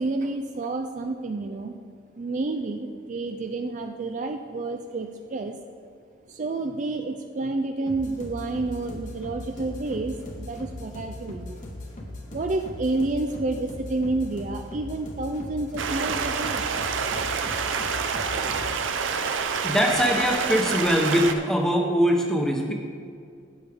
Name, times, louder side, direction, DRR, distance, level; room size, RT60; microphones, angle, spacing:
voice 1, 0.0-1.8 2.2-5.5 6.3-11.6 12.3-16.8, right 2 dB, 40° right, 5 dB, 0.4 m, -29 dB
sound 1, 7.9-18.8, left 1 dB, 40° left, 1.2 m, -39 dB
Stream, 15.8-21.3, right 5 dB, 80° right, 0.6 m, -27 dB
voice 2, 19.6-22.7, equal, 5° left, 1 dB, 0.9 m, -22 dB
11.5 x 8.2 x 3.5 m, 2.3 s
head